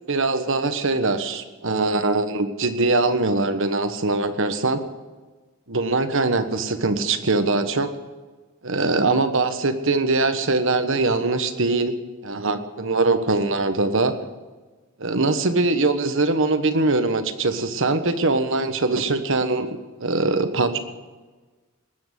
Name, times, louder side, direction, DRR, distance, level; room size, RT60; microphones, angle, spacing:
voice 1, 0.1-4.8 5.7-7.9 8.6-12.0 12.2-14.1 15.0-20.8, right 3 dB, 60° right, 10 dB, 1.3 m, -22 dB
20.0 x 8.8 x 8.1 m, 1.3 s
head